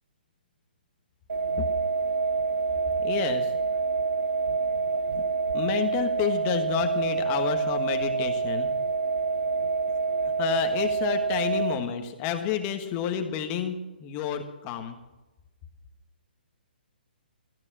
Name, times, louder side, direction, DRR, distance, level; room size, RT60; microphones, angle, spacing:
sound 1, 1.3-11.7, right 4 dB, 75° right, 1.4 m, -27 dB
voice 1, 3.0-3.5 5.5-8.7 10.2-15.0, left 8 dB, 30° left, 6 dB, 1.4 m, -30 dB
14.0 x 9.7 x 6.1 m, 1.1 s
hypercardioid pair, 145°, 6 cm